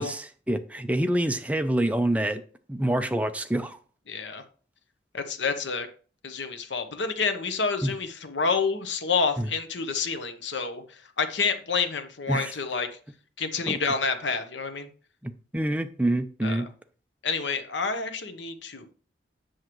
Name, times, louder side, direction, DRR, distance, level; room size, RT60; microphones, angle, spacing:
voice 1, 0.0-2.4 2.7-3.8 7.8-7.9 9.4-9.5 12.3-12.5 13.7-13.8 15.2-16.7, right 1 dB, 10° right, 0.5 m, -26 dB
voice 2, 4.1-4.4 5.1-5.9 6.2-12.9 13.4-14.9 16.4-16.6 17.2-18.9, left 5 dB, 85° left, 0.9 m, -28 dB
7.9 x 6.3 x 3.0 m
head